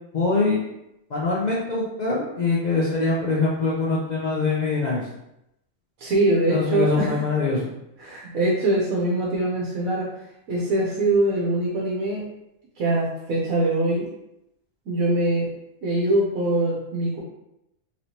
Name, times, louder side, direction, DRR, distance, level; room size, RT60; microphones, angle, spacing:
voice 1, 0.1-0.6 1.1-5.0 6.5-7.7, left 3 dB, 55° left, -5 dB, 0.5 m, -23 dB
voice 2, 6.0-7.1 8.0-10.1 10.5-12.2 12.8-14.1 14.9-15.5 15.8-17.2, right 2 dB, 80° right, -5 dB, 1.2 m, -23 dB
3.1 x 3.1 x 2.8 m, 0.85 s
omnidirectional pair, 1.4 m